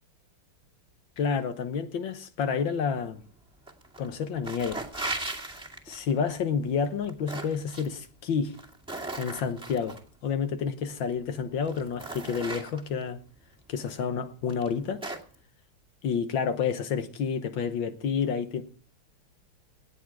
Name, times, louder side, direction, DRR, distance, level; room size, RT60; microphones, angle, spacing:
voice 1, 1.2-3.2 4.0-4.8 5.9-8.5 9.2-13.2 13.7-15.0 16.0-18.6, left 6 dB, 65° left, 1.7 m, -29 dB
sound 1, 3.7-4.1 4.4-6.1 6.8-7.9 8.5-10.0 11.0-11.1 11.6-13.0 13.8-14.0 14.5-15.3, right 2 dB, ahead, 1.8 m, -37 dB
18.0 x 8.2 x 4.8 m
omnidirectional pair, 2.4 m